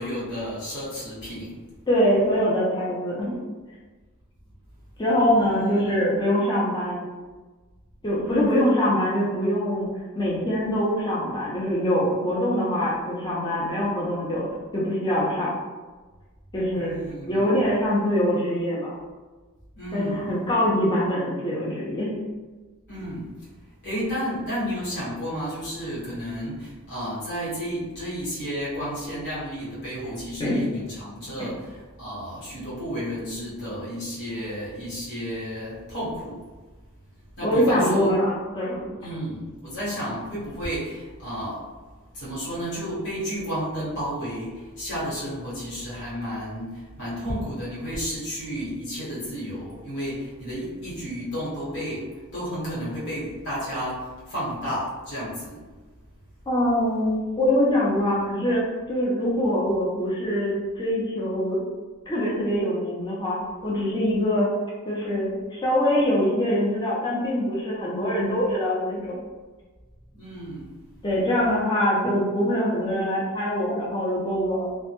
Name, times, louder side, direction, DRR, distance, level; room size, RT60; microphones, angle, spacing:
voice 1, 0.0-1.6 5.4-5.6 16.8-17.5 19.7-20.3 22.9-23.3 23.8-36.4 37.4-38.1 39.0-41.6 42.1-55.6 70.1-70.7, equal, 60° left, -9 dB, 1.1 m, -32 dB
voice 2, 1.9-3.4 5.0-7.1 8.0-15.5 16.5-17.0 17.3-19.0 19.9-22.2 30.4-30.6 31.4-31.5 37.4-38.9 56.5-61.6 62.1-64.5 64.9-69.2 71.0-74.7, equal, 20° left, -6 dB, 0.5 m, -24 dB
2.1 x 2.1 x 2.9 m, 1.3 s
head